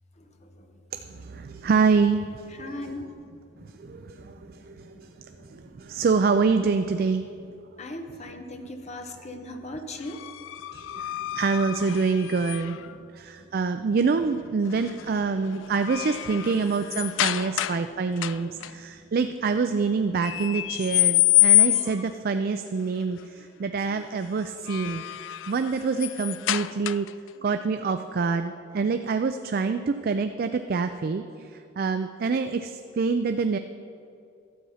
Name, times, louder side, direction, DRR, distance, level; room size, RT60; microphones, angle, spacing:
voice 1, 0.2-0.8 1.1-1.7 2.5-6.1 7.2-7.5 7.8-10.2 10.9-11.4 12.1-13.0 13.4-13.5 13.9-14.0 14.9-15.7 17.0-18.8 20.4-20.5 21.0-21.5, left 1 dB, 35° left, 5 dB, 0.9 m, -43 dB
voice 2, 0.9-2.6 3.8-7.2 10.7-12.8 13.1-25.1 25.5-27.1 27.4-33.6, right 4 dB, 50° right, 8 dB, 0.4 m, -26 dB
sound 1, 10.0-12.9 14.7-15.0 15.4-17.9 18.2-18.7 20.2-22.1 24.4-27.3, left 16 dB, 75° left, 0.3 m, -26 dB
12.0 x 8.2 x 5.6 m, 2.5 s
head